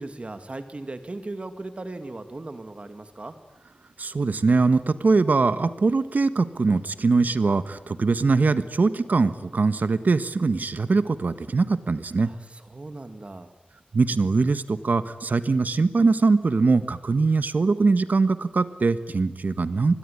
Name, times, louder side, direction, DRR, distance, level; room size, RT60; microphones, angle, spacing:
voice 1, 0.0-3.3 12.2-13.5, right 2 dB, 45° right, 8 dB, 2.0 m, -37 dB
voice 2, 4.0-12.3 13.9-20.0, right 4 dB, 70° right, 12 dB, 1.4 m, -22 dB
27.0 x 20.5 x 9.8 m, 1.0 s
wide cardioid pair, 85°, 3 cm